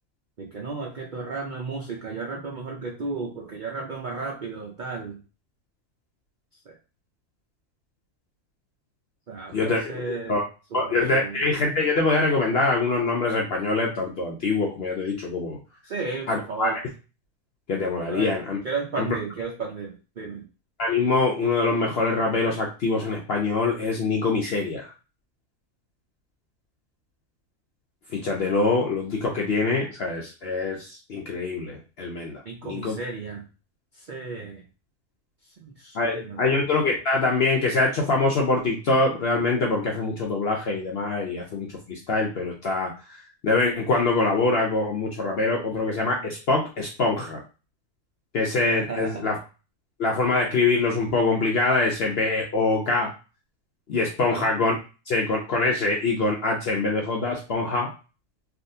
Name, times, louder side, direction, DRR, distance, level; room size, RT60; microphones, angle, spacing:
voice 1, 0.4-5.2 6.5-6.8 9.3-10.4 10.7-11.4 15.8-16.8 18.1-18.3 18.6-20.4 32.4-33.5 33.9-34.6 35.4-36.6 48.8-49.3 54.2-54.5, right 4 dB, 75° right, 0 dB, 0.4 m, -34 dB
voice 2, 10.7-15.6 16.3-16.8 17.7-18.6 19.0-19.1 20.8-24.9 28.1-32.9 35.9-42.9 43.4-47.4 48.3-49.4 50.0-53.1 53.9-54.8 55.1-57.9, left 3 dB, 65° left, 0 dB, 0.6 m, -24 dB
3.4 x 2.4 x 2.7 m, 0.33 s
omnidirectional pair, 1.6 m